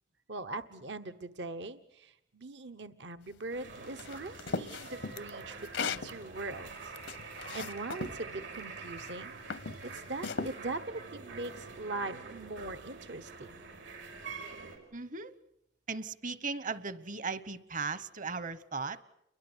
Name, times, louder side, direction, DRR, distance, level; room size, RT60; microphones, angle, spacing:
voice 1, 0.3-6.9 7.2-9.4 9.8-13.6, right 2 dB, 65° right, 11 dB, 1.1 m, -41 dB
sound 1, 3.5-14.8, right 4 dB, 85° right, 6.2 m, -46 dB
sound 2, 4.0-6.1 6.6-8.2 8.9-9.1 9.5-10.5, left 4 dB, 75° left, 0.9 m, -37 dB
voice 2, 14.9-15.3 15.9-19.0, right 4 dB, 45° right, 15 dB, 1.1 m, -37 dB
30.0 x 23.0 x 8.1 m, 0.81 s
head